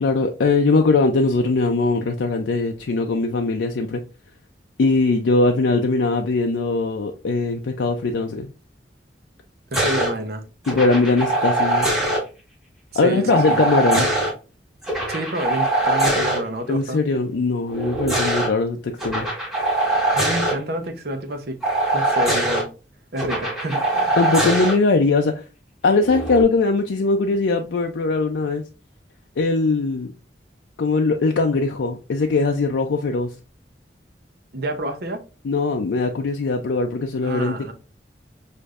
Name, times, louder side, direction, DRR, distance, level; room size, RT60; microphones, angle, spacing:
voice 1, 0.0-4.0 4.8-8.5 10.7-11.9 12.9-14.1 16.7-19.3 24.2-25.4 25.8-28.6 29.4-30.1 30.8-33.3 35.4-37.7, left 3 dB, 85° left, 0.4 m, -20 dB
sound 1, 9.7-10.1 10.6-12.2 13.3-14.3 14.8-16.4 17.7-18.5 19.0-20.5 21.6-22.6 23.2-24.7 26.0-26.4, right 2 dB, ahead, 1.4 m, -22 dB
voice 2, 9.7-10.4 12.9-13.6 15.1-17.0 20.1-21.6 21.9-22.7 23.1-24.2 34.5-35.2 37.2-37.7, right 1 dB, 60° right, 0.8 m, -28 dB
6.4 x 2.6 x 2.4 m
head